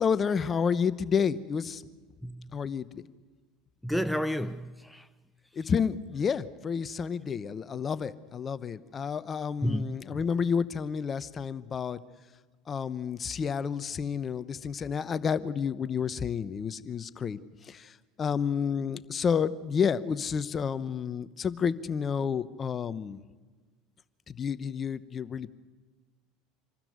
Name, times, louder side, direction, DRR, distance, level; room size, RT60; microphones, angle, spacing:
voice 1, 0.0-1.8 2.5-3.0 5.6-12.0 12.7-17.4 17.7-17.9 18.2-23.2 24.3-25.5, left 6 dB, 30° left, 0.9 m, -30 dB
voice 2, 2.2-2.6 3.8-5.1 9.6-10.0, equal, ahead, 0.6 m, -31 dB
25.5 x 13.0 x 9.4 m
hypercardioid pair, 85°, 0 cm